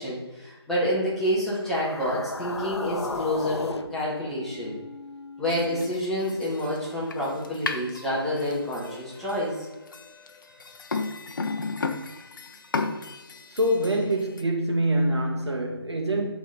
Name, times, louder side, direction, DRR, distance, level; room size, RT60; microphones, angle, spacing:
voice 1, 0.0-4.8 5.4-9.7, equal, ahead, 1.8 m, -28 dB
sound 1, 1.5-5.9, left 3 dB, 85° left, 0.7 m, -36 dB
sound 2, 5.5-14.4, left 4 dB, 50° left, 0.8 m, -35 dB
voice 2, 13.5-16.3, right 1 dB, 85° right, 1.9 m, -25 dB
12.0 x 4.1 x 4.1 m
figure-of-eight pair, 155°, 14 cm